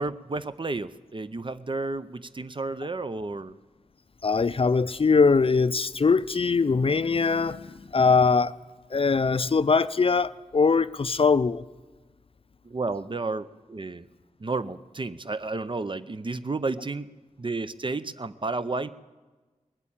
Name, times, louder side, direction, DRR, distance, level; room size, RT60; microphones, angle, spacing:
voice 1, 0.0-3.5 12.6-14.1 14.4-17.1 17.4-18.9, right 3 dB, 40° right, 0.6 m, -32 dB
voice 2, 4.2-8.5 8.9-11.6, left 4 dB, 45° left, 0.4 m, -22 dB
19.5 x 8.3 x 8.8 m
cardioid pair, 45°, 13 cm